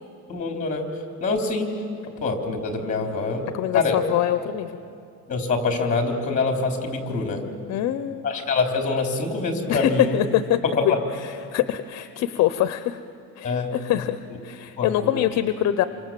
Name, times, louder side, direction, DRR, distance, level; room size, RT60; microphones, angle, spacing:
voice 1, 0.3-0.8 1.2-1.7 2.2-3.4 3.7-4.0 5.3-7.4 8.2-10.2 10.7-11.0 13.4-13.7 14.8-15.3, left 3 dB, 25° left, 3 dB, 3.4 m, -25 dB
voice 2, 3.5-4.8 7.7-8.3 9.7-13.0 13.4-15.8, left 12 dB, 55° left, 11 dB, 0.7 m, -24 dB
27.5 x 25.5 x 7.5 m, 2.5 s
cardioid pair, 160°, 32 cm